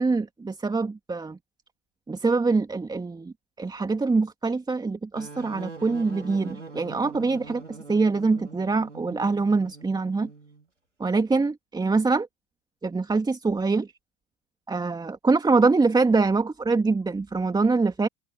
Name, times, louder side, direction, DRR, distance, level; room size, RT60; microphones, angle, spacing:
voice 1, 0.0-1.4 2.1-10.3 11.0-12.3 12.8-13.9 14.7-18.1, right 3 dB, 10° right, 2.5 m, -24 dB
sound 1, 5.2-10.7, right 3 dB, 85° right, 3.2 m, -43 dB
figure-of-eight pair, 75°, 35 cm